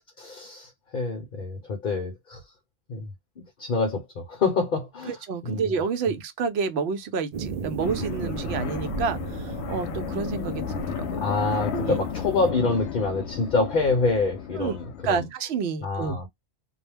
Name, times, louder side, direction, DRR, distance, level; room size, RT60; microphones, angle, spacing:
voice 1, 0.2-2.4 2.9-3.1 3.4-5.1 5.4-5.6 11.2-15.2 15.8-16.3, left 3 dB, 55° left, 0.8 m, -26 dB
voice 2, 5.1-11.3 11.7-12.0 14.5-14.7 15.0-16.2, right 5 dB, 75° right, 0.8 m, -29 dB
sound 1, 7.3-12.3, right 5 dB, 55° right, 0.4 m, -35 dB
sound 2, 7.8-15.2, left 7 dB, 85° left, 0.9 m, -33 dB
2.2 x 2.1 x 3.2 m
omnidirectional pair, 1.1 m